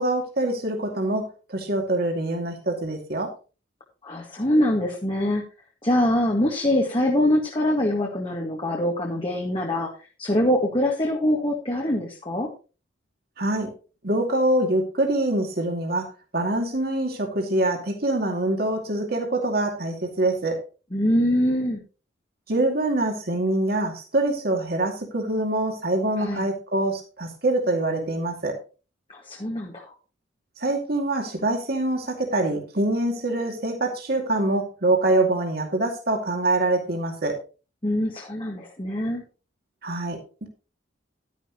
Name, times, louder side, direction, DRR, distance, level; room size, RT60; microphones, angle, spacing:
voice 1, 0.0-3.3 13.4-13.7 14.0-16.1 16.3-20.6 22.5-28.5 30.6-37.3 39.8-40.5, right 2 dB, 50° right, 2 dB, 2.5 m, -25 dB
voice 2, 4.0-5.4 5.8-9.9 10.2-12.5 20.9-21.8 26.2-26.5 29.1-29.9 37.8-39.2, left 1 dB, 25° left, -1 dB, 1.9 m, -24 dB
12.0 x 10.5 x 3.1 m, 0.33 s
head